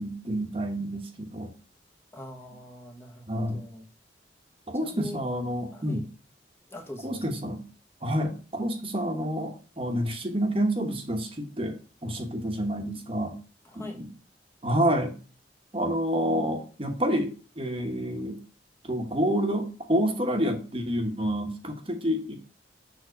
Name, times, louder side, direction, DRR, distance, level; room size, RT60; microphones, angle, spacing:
voice 1, 0.0-1.5 3.3-3.6 4.7-6.0 7.0-7.6 8.0-11.8 12.0-13.3 13.7-14.1 14.6-15.1 15.7-18.4 18.8-22.3, equal, 30° right, 4 dB, 1.2 m, -28 dB
voice 2, 2.1-3.8 4.8-5.2 5.7-6.0 6.7-7.2 13.6-14.0, left 1 dB, 15° left, 1 dB, 1.3 m, -42 dB
7.0 x 3.9 x 6.5 m, 0.36 s
head